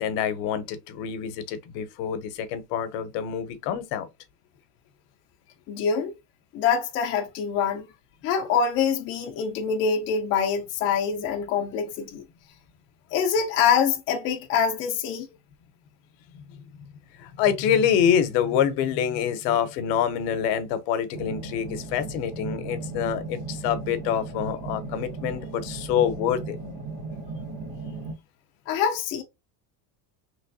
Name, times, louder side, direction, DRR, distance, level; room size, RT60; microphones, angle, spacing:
voice 1, 0.0-4.1 16.5-16.6 17.2-26.6, left 8 dB, 70° left, 0.8 m, -26 dB
voice 2, 5.7-6.1 6.5-7.8 8.2-12.2 13.1-15.3 28.7-29.2, left 7 dB, 25° left, 0.4 m, -25 dB
sound 1, 21.1-28.1, right 3 dB, 90° right, 2.0 m, -36 dB
3.2 x 3.0 x 2.6 m
cardioid pair, 160°, 49 cm